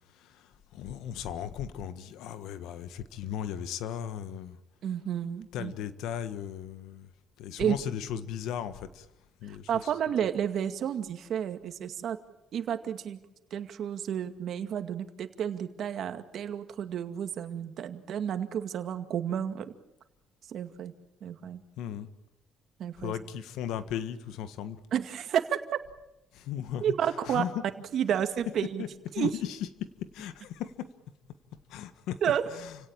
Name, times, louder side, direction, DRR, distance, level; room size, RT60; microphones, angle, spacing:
voice 1, 0.1-4.6 5.5-7.1 7.4-9.1 9.4-9.9 21.8-22.1 23.0-24.8 26.3-26.9 27.2-27.6 28.8-28.9 29.1-29.7 30.1-30.9 31.7-32.2 32.5-32.7, left 9 dB, 85° left, 12 dB, 1.5 m, -36 dB
voice 2, 4.8-5.7 7.6-7.8 9.5-12.2 12.5-13.2 13.5-19.7 20.5-20.9 21.2-21.6 22.8-23.1 24.9-25.6 26.8-27.4 27.9-28.8 29.1-29.3 32.2-32.4, right 9 dB, 60° right, 8 dB, 2.2 m, -31 dB
29.5 x 17.5 x 8.9 m, 0.90 s
cardioid pair, 125°, 0 cm